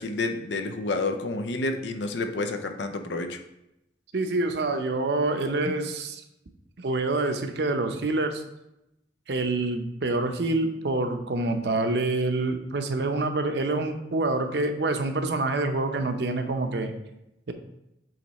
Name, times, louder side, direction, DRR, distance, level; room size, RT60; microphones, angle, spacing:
voice 1, 0.0-3.4, left 2 dB, 85° left, 7 dB, 0.6 m, -29 dB
voice 2, 4.1-6.2 6.8-8.4 9.3-16.9 17.5-17.6, right 2 dB, 70° right, 6 dB, 0.7 m, -26 dB
7.8 x 3.2 x 4.1 m, 0.87 s
head